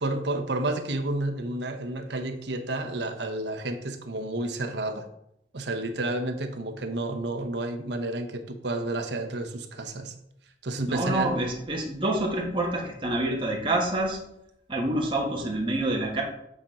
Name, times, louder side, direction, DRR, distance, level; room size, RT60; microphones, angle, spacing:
voice 1, 0.0-5.1 5.5-10.1 10.6-11.4, right 2 dB, 75° right, 5 dB, 0.9 m, -30 dB
voice 2, 10.9-14.2 14.7-16.2, right 1 dB, 30° right, -1 dB, 1.5 m, -27 dB
8.7 x 4.3 x 4.9 m, 0.80 s
head